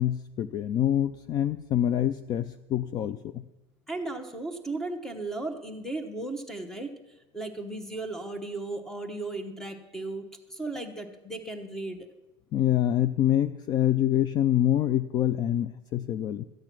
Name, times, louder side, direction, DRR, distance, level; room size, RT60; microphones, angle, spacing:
voice 1, 0.0-3.5 12.5-16.4, left 11 dB, 35° left, 13 dB, 0.3 m, -26 dB
voice 2, 3.9-6.9 7.3-12.0, right 2 dB, 5° left, 7 dB, 1.0 m, -35 dB
13.5 x 8.7 x 6.1 m, 1.0 s
cardioid pair, 160°, 12 cm